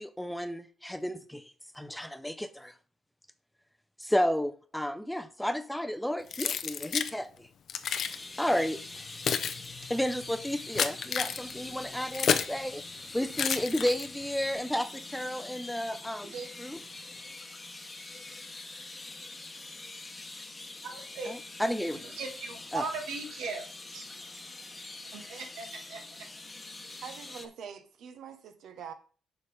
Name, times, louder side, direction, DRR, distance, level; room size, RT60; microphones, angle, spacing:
voice 1, 0.0-2.7 4.0-7.5 8.4-8.8 9.9-12.8 13.1-16.3 16.6-16.8 21.3-22.0 22.7-22.9, equal, 5° left, 0.5 m, -32 dB
Keys jangling, 6.3-7.1 7.7-8.2 8.9-12.6 13.3-14.3, left 7 dB, 60° left, 0.5 m, -31 dB
sound 1, 8.0-27.5, left 2 dB, 25° left, 1.0 m, -44 dB
voice 2, 20.8-21.3 22.0-24.1 25.1-26.0, right 4 dB, 90° right, 1.7 m, -39 dB
voice 3, 27.0-28.9, right 7 dB, 70° right, 1.0 m, -44 dB
8.1 x 5.3 x 3.4 m
cardioid pair, 90°, 0 cm